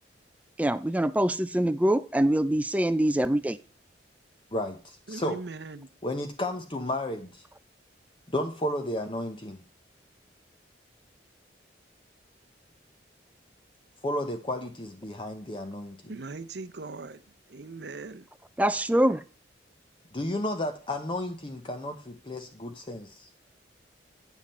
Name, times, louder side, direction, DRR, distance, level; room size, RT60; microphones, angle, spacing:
voice 1, 0.6-3.6 18.6-19.2, right 1 dB, 10° right, 0.4 m, -24 dB
voice 2, 4.5-5.4 6.0-7.4 8.3-9.6 14.0-16.1 20.1-23.3, left 1 dB, 30° left, 0.8 m, -33 dB
voice 3, 5.1-5.9 16.0-17.2 17.5-18.3, right 3 dB, 65° right, 0.6 m, -39 dB
9.1 x 7.3 x 4.2 m
head